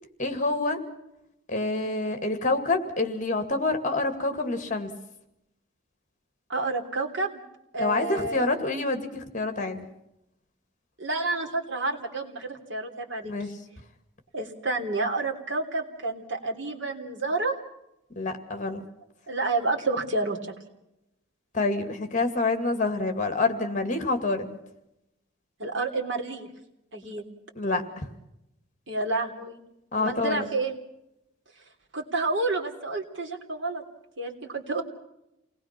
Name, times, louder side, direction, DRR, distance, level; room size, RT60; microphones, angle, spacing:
voice 1, 0.2-0.8 1.5-4.9 7.8-9.9 13.2-13.5 18.2-18.8 21.5-24.6 27.6-28.1 29.9-30.5, left 3 dB, 35° left, 8 dB, 2.2 m, -27 dB
voice 2, 6.5-7.4 7.7-8.6 11.0-13.3 14.3-17.6 19.3-20.5 25.6-26.5 26.9-27.2 28.9-29.6 29.9-30.7 31.9-33.8 34.2-34.8, right 3 dB, 55° right, 1 dB, 3.3 m, -29 dB
28.0 x 19.5 x 6.0 m, 0.85 s
head